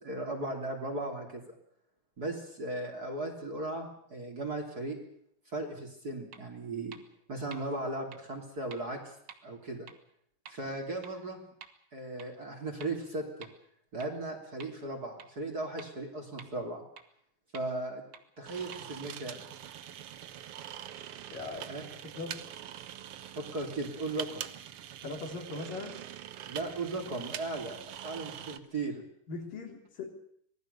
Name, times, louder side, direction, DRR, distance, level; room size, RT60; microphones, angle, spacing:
voice 1, 0.0-1.6 2.2-5.0 5.5-7.0 7.3-9.0 9.4-9.9 10.5-11.4 11.9-13.5 13.9-16.8 17.5-18.0 18.4-19.5 21.7-21.8 23.4-24.4 26.5-27.8 28.0-29.0, right 2 dB, 25° right, 2 dB, 3.5 m, -37 dB
sound 1, 6.3-6.4 6.9-7.0 7.5-7.6 8.1-8.2 8.7-8.8 9.3-9.4 9.9-10.0 10.5-10.6 11.0-11.1 11.6-11.7 12.2-12.3 12.8-12.9 13.4-13.5 14.0-14.1 14.6-14.7 15.2-15.3 15.8-15.9 16.4-16.5 17.0-17.1 17.5-17.6 18.1-18.2 18.7-18.8, right 7 dB, 45° right, 1.5 m, -48 dB
sound 2, 18.5-28.6, right 11 dB, 70° right, 1.3 m, -44 dB
voice 2, 21.3-21.7 22.1-22.4 25.0-26.0 29.3-30.1, left 3 dB, 70° left, 3 dB, 5.1 m, -40 dB
26.0 x 19.0 x 6.9 m, 0.67 s
omnidirectional pair, 4.0 m